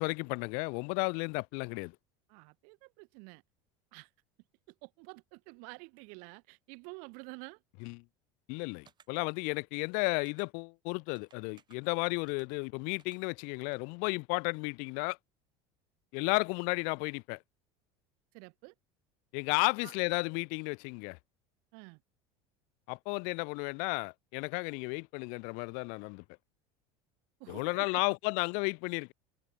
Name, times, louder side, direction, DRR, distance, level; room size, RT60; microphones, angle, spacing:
voice 1, 0.0-1.9 7.8-7.9 8.5-15.2 16.1-17.4 19.3-21.2 22.9-26.2 27.5-29.1, left 35 dB, 65° left, 0.4 m, -33 dB
voice 2, 2.3-3.4 3.9-4.1 4.7-7.6 18.3-18.7 19.8-19.9 21.7-22.0 27.4-28.0, right 37 dB, 65° right, 0.5 m, -49 dB
sound 1, 8.9-9.1 10.3-10.5 11.2-11.8 12.3-12.5 13.0-13.2 13.7-13.8, right 8 dB, 30° right, 1.1 m, -61 dB
supercardioid pair, 115°, 15 cm